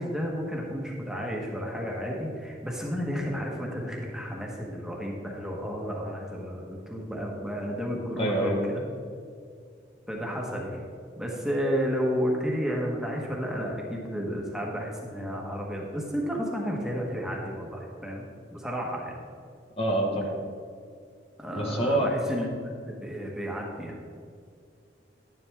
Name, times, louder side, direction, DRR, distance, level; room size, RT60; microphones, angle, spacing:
voice 1, 0.0-8.8 10.1-10.8 11.2-18.2 18.5-19.2 21.4-24.0, equal, 5° right, -2 dB, 1.3 m, -32 dB
voice 2, 8.2-8.6 19.8-20.4 21.5-22.1, right 1 dB, 35° left, 0 dB, 1.4 m, -26 dB
11.0 x 10.5 x 3.6 m, 2.3 s
head